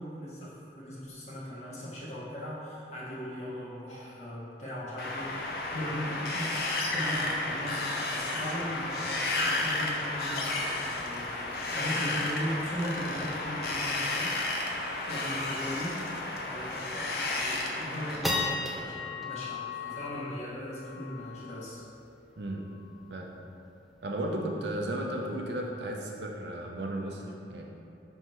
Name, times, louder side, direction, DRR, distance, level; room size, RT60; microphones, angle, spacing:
voice 1, 0.0-6.5 6.9-14.3 15.1-21.8, equal, 40° left, -8 dB, 1.2 m, -38 dB
Wind, 5.0-18.2, left 2 dB, 55° left, 0.6 m, -32 dB
sound 1, 17.1-17.3 17.8-24.3, left 3 dB, ahead, 0.5 m, -37 dB
voice 2, 24.0-27.6, right 1 dB, 75° right, 0 dB, 0.7 m, -34 dB
5.6 x 5.4 x 3.1 m, 2.6 s
head